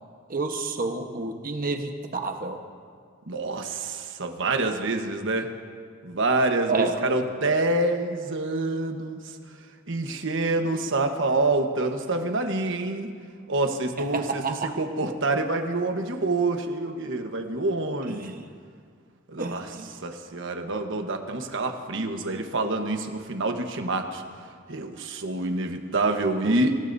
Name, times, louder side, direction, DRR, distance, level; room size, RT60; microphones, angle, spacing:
voice 1, 0.3-2.6 6.7-7.0 14.1-14.7 19.4-19.9 26.4-26.5, right 3 dB, 45° right, 4 dB, 1.2 m, -29 dB
voice 2, 3.3-5.5 6.0-9.2 9.9-13.1 13.5-18.3 19.3-19.7 20.0-24.2 24.7-26.8, right 2 dB, 65° right, 5 dB, 1.2 m, -27 dB
26.5 x 16.0 x 2.7 m, 2.1 s
head